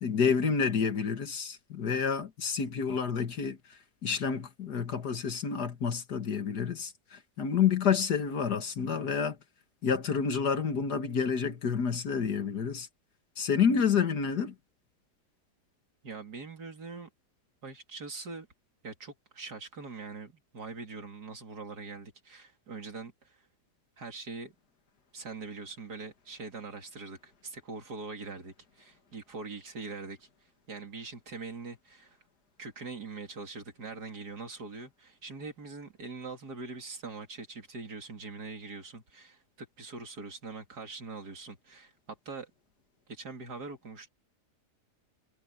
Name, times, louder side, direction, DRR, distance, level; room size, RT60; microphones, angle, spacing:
voice 1, 0.0-9.4 9.8-12.9 13.4-14.5, left 6 dB, 75° left, 2.3 m, -29 dB
voice 2, 16.0-17.1 17.6-18.5 18.8-23.5 24.0-24.5 25.1-32.2 32.6-42.5 43.1-44.1, right 4 dB, 75° right, 3.4 m, -43 dB
omnidirectional pair, 1.7 m